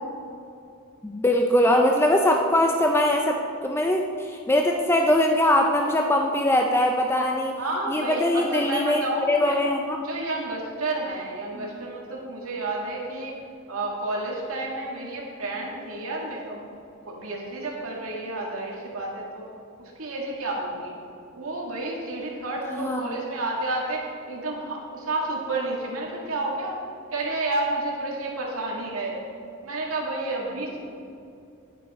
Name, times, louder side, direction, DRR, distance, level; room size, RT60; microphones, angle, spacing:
voice 1, 1.0-7.5 7.9-10.0 11.5-11.7 22.7-23.2, left 1 dB, 10° left, 2 dB, 0.5 m, -22 dB
voice 2, 7.6-9.6 10.0-13.3 13.7-16.6 17.1-19.4 19.8-20.9 21.3-26.8 27.1-29.2 29.6-30.8, right 2 dB, 70° right, -2 dB, 2.0 m, -30 dB
11.0 x 8.8 x 4.3 m, 2.5 s
head